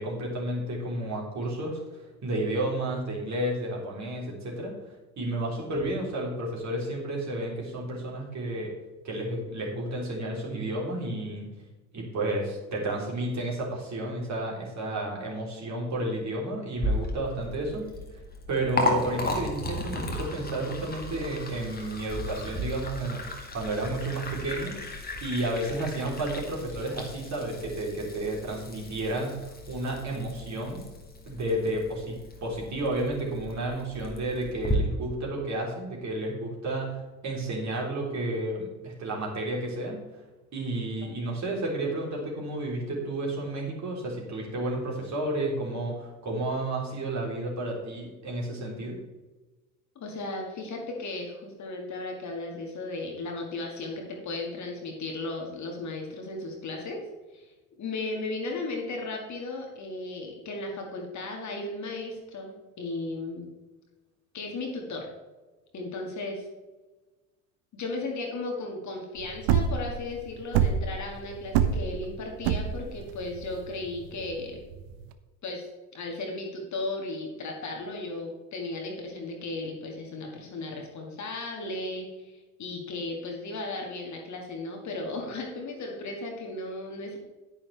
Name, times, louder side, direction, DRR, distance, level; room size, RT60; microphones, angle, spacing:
voice 1, 0.0-4.7 5.2-8.7 9.0-11.5 11.9-17.8 18.5-24.9 25.2-30.8 31.3-40.0 40.5-49.0, right 1 dB, 35° right, -2 dB, 3.6 m, -31 dB
Liquid, 16.7-34.7, left 1 dB, 20° left, 2.0 m, -35 dB
voice 2, 50.0-57.0 57.3-57.5 57.8-63.5 64.3-65.1 65.7-66.4 67.7-74.6 75.4-75.6 75.9-87.2, left 2 dB, 35° left, 1 dB, 2.1 m, -35 dB
sound 1, 69.2-75.1, right 8 dB, 50° right, 0.9 m, -26 dB
10.0 x 9.7 x 3.4 m, 1.2 s
figure-of-eight pair, 65°, 49 cm